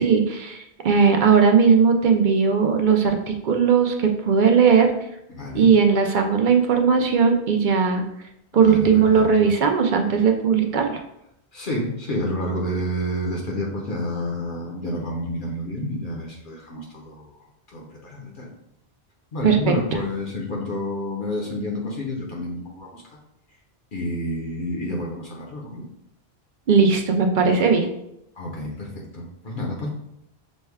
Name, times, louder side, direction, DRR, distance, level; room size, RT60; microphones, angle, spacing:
voice 1, 0.0-4.9 5.5-8.0 8.5-11.0 19.4-19.7 26.7-27.9, right 6 dB, 60° right, 4 dB, 0.6 m, -18 dB
voice 2, 5.3-5.7 8.5-9.5 11.5-17.4 17.7-18.5 19.3-23.0 23.9-25.9 28.4-29.9, left 1 dB, 55° left, -1 dB, 0.8 m, -29 dB
6.2 x 2.2 x 3.4 m, 0.81 s
omnidirectional pair, 1.1 m